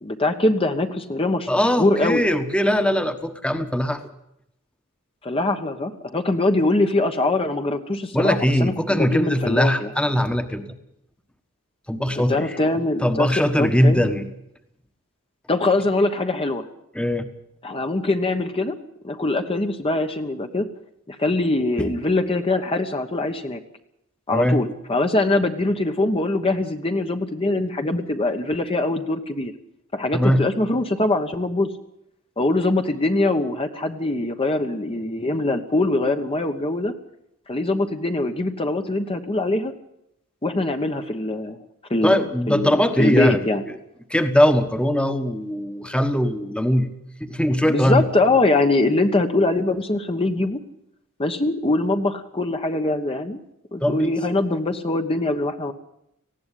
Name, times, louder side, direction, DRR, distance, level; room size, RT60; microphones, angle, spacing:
voice 1, 0.0-2.3 5.2-9.9 12.3-14.1 15.5-16.7 17.6-18.7 19.0-20.7 21.1-23.6 24.3-29.5 29.9-31.7 32.4-36.9 37.5-39.7 40.4-41.6 41.9-43.6 47.7-50.6 51.2-53.4 53.7-55.7, left 2 dB, 25° left, 6 dB, 1.2 m, -23 dB
voice 2, 1.5-4.0 8.1-10.7 11.9-12.4 13.0-14.3 16.9-17.3 21.8-21.9 24.3-24.6 30.1-30.4 42.0-43.4 44.1-46.9 47.2-48.0 53.8-54.1, equal, 5° left, 9 dB, 1.3 m, -20 dB
19.0 x 16.0 x 10.0 m, 0.79 s
head